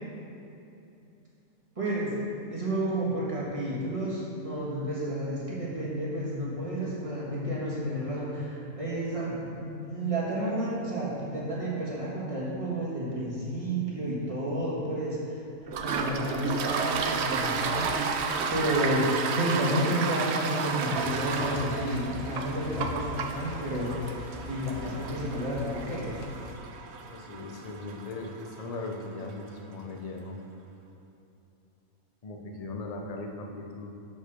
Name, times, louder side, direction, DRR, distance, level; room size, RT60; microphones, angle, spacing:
voice 1, 1.7-2.1 2.5-15.4 15.8-26.1, right 1 dB, 25° right, -7 dB, 1.5 m, -31 dB
Toilet flush, 15.7-29.0, right 5 dB, 65° right, 0.7 m, -32 dB
sound 1, 20.9-26.6, left 4 dB, 65° left, 0.8 m, -43 dB
voice 2, 27.1-30.4 32.2-33.9, left 2 dB, 40° left, 1 dB, 0.5 m, -38 dB
6.3 x 5.5 x 6.0 m, 2.8 s
omnidirectional pair, 1.5 m